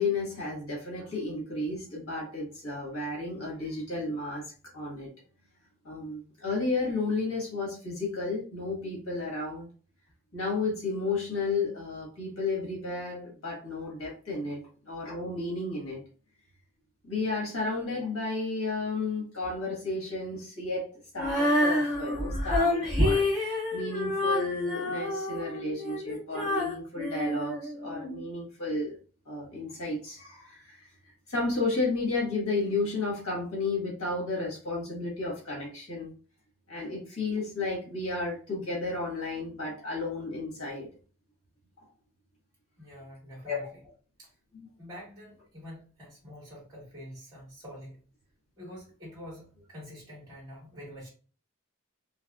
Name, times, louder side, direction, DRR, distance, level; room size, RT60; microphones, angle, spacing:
voice 1, 0.0-5.1 5.8-9.7 10.3-14.6 14.8-16.0 17.1-20.9 21.1-29.0 29.3-30.9 31.3-36.1 36.7-40.9 43.4-43.6 44.5-44.7, left 3 dB, 90° left, -3 dB, 1.5 m, -32 dB
Female singing, 21.2-28.2, left 1 dB, 25° left, 1.8 m, -28 dB
voice 2, 42.8-43.6 44.2-44.3 44.8-48.0 48.6-51.1, equal, 20° right, -6 dB, 1.7 m, -46 dB
3.4 x 3.2 x 2.4 m, 0.39 s
head